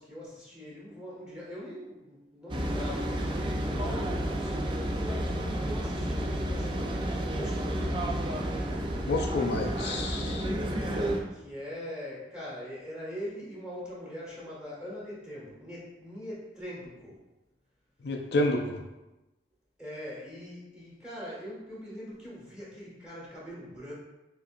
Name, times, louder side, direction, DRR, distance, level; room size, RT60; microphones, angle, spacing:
voice 1, 0.0-8.3 9.0-9.1 9.7-10.0 10.6-17.2 19.8-23.9, equal, 5° right, -7 dB, 1.6 m, -42 dB
sound 1, 2.5-11.2, right 1 dB, 25° right, 0.4 m, -31 dB
voice 2, 9.1-10.5 18.0-18.8, left 2 dB, 65° left, 2 dB, 0.4 m, -29 dB
5.2 x 3.9 x 2.5 m, 1.0 s
head